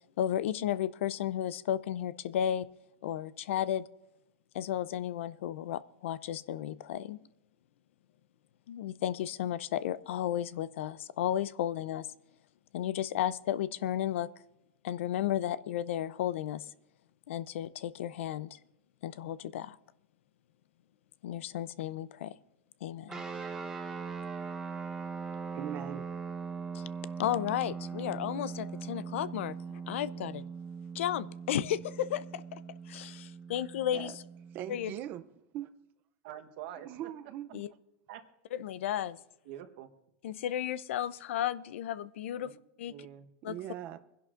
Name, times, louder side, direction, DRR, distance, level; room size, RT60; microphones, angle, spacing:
voice 1, 0.2-2.7 3.0-3.9 4.5-7.2 8.7-12.1 12.7-14.3 14.8-16.7 17.3-18.6 19.0-19.8 21.2-22.4 22.8-23.2 26.7-26.8 27.2-30.4 30.9-32.6 32.9-34.1 34.7-34.9 37.5-37.7 38.6-39.2 40.2-42.5 42.8-42.9 43.4-43.6, left 11 dB, 80° left, 0.5 m, -33 dB
sound 1, 23.1-34.9, right 5 dB, 10° right, 0.9 m, -41 dB
voice 2, 25.5-26.1 33.9-34.1 34.5-35.2 35.5-35.7 36.8-37.6 43.5-44.0, right 11 dB, 30° right, 0.5 m, -40 dB
voice 3, 36.2-37.1 38.1-38.2 39.4-39.9 42.3-42.5 42.9-43.3, right 11 dB, 55° right, 1.1 m, -46 dB
24.5 x 11.0 x 2.5 m
supercardioid pair, 170°, 7 cm